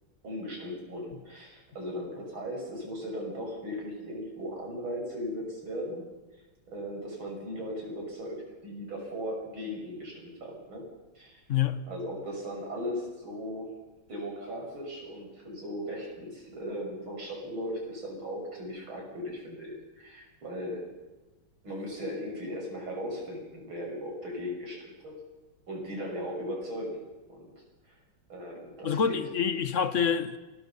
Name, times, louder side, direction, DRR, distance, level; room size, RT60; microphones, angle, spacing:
voice 1, 0.2-6.0 6.7-10.8 11.2-11.4 11.9-13.7 14.1-20.9 21.6-25.1 25.7-27.0 27.3-27.5 27.9-28.0 28.3-29.3, equal, 75° right, 7.2 m, -37 dB
voice 2, 28.8-30.4, left 7 dB, 45° left, 1.2 m, -27 dB
28.5 x 21.5 x 5.5 m
omnidirectional pair, 2.2 m